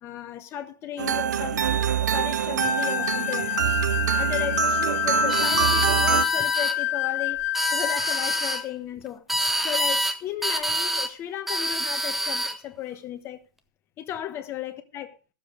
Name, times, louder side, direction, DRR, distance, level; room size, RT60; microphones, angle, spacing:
voice 1, 0.0-3.8 4.2-7.4 7.7-9.2 9.6-13.4 14.0-15.2, left 11 dB, 25° left, 1.1 m, -35 dB
sound 1, 1.0-6.3, right 8 dB, 60° right, 0.9 m, -24 dB
sound 2, 2.6-8.7, left 16 dB, 45° left, 0.5 m, -28 dB
sound 3, 5.3-6.8 7.4-8.6 9.3-10.2 10.4-11.1 11.5-12.6, equal, ahead, 0.8 m, -26 dB
14.0 x 7.2 x 5.1 m
figure-of-eight pair, 110°, 11 cm